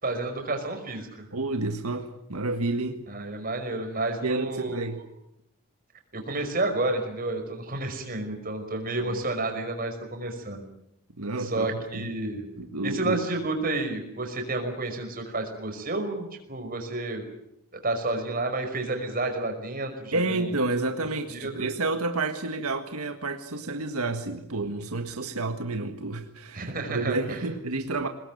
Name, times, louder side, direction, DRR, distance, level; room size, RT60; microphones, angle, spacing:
voice 1, 0.0-1.2 3.1-4.8 6.1-10.6 11.4-12.4 12.8-17.2 17.8-20.6 21.3-21.7 26.5-27.4, right 2 dB, 40° right, 5 dB, 5.4 m, -30 dB
voice 2, 1.3-3.0 4.2-5.0 9.1-9.2 11.2-12.1 12.6-13.2 20.1-28.1, right 2 dB, 90° right, 6 dB, 1.7 m, -30 dB
23.0 x 20.5 x 9.3 m, 0.81 s
head